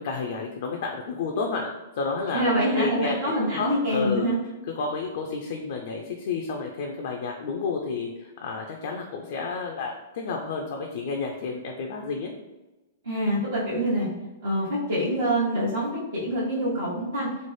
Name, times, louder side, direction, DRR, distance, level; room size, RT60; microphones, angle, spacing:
voice 1, 0.0-1.7 2.0-2.4 2.8-4.3 4.8-12.3, left 4 dB, 65° left, 1 dB, 0.4 m, -31 dB
voice 2, 2.3-4.4 13.0-14.1 14.4-17.3, equal, 80° right, -9 dB, 0.9 m, -25 dB
3.1 x 2.0 x 3.1 m, 1.0 s
hypercardioid pair, 115°, 0 cm